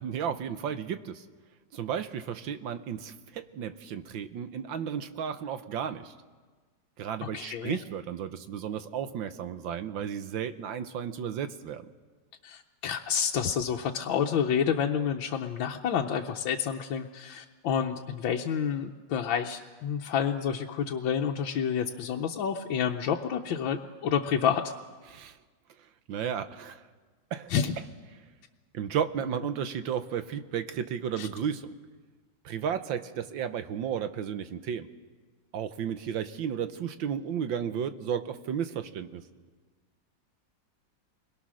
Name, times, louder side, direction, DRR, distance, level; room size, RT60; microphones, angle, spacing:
voice 1, 0.0-1.2 1.7-6.1 7.0-11.9 25.1-25.4 26.1-26.8 27.3-27.5 28.7-31.7 32.5-34.9 35.5-39.2, right 8 dB, 80° right, 10 dB, 1.7 m, -33 dB
voice 2, 7.2-7.8 12.4-24.7 27.5-27.7 31.2-31.3, left 8 dB, 85° left, 2 dB, 1.7 m, -29 dB
28.5 x 22.0 x 6.3 m, 1.4 s
omnidirectional pair, 2.0 m